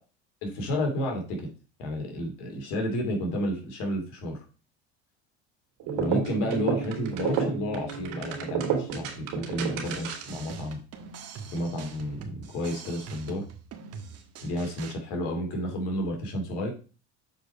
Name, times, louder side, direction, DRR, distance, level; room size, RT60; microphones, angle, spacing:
voice 1, 0.4-1.5 1.8-4.4 5.9-10.8 11.5-13.4 14.4-16.7, left 1 dB, 65° left, 2 dB, 2.9 m, -31 dB
sound 1, 5.8-10.4, right 6 dB, 60° right, 2.9 m, -30 dB
sound 2, 9.8-14.9, right 5 dB, 45° right, 1.5 m, -43 dB
7.2 x 4.7 x 4.7 m, 0.35 s
hypercardioid pair, 85°, 35 cm